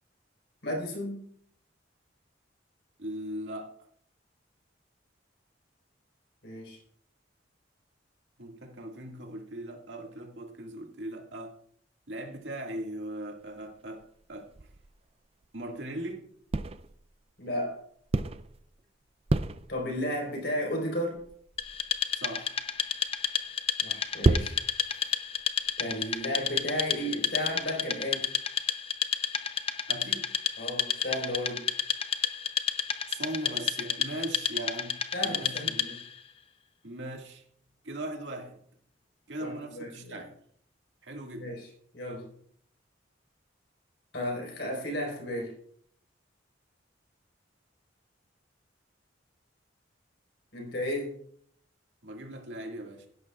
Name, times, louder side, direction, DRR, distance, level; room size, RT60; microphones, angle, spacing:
voice 1, 0.6-1.2 6.4-6.8 17.4-17.8 19.7-21.2 23.8-24.6 25.8-28.3 30.6-31.7 35.1-36.0 39.4-40.2 41.4-41.7 41.9-42.3 44.1-45.6 50.5-51.2, left 1 dB, 65° left, 4.6 m, -33 dB
voice 2, 3.0-3.8 8.4-11.5 12.1-14.5 15.5-16.2 22.1-22.6 29.9-30.4 33.1-36.0 36.8-37.4 37.8-38.6 39.3-40.3 41.0-41.5 52.0-53.1, right 1 dB, 75° right, 2.0 m, -39 dB
sound 1, 13.4-16.1 16.5-17.1 17.8-18.8 19.1-20.2 20.7-20.9 21.1-27.7, right 2 dB, 35° right, 0.4 m, -32 dB
Wood, 21.6-36.1, left 7 dB, 30° left, 0.6 m, -31 dB
17.0 x 11.5 x 2.4 m
head